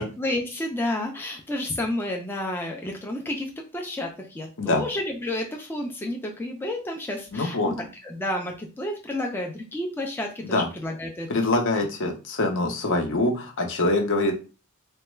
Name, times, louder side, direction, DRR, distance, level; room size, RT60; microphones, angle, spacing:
voice 1, 0.2-11.6, left 1 dB, 10° left, 0 dB, 0.4 m, -31 dB
voice 2, 7.3-7.7 10.5-10.7 11.3-14.3, left 2 dB, 60° left, 3 dB, 0.8 m, -24 dB
3.3 x 2.2 x 3.1 m, 0.33 s
head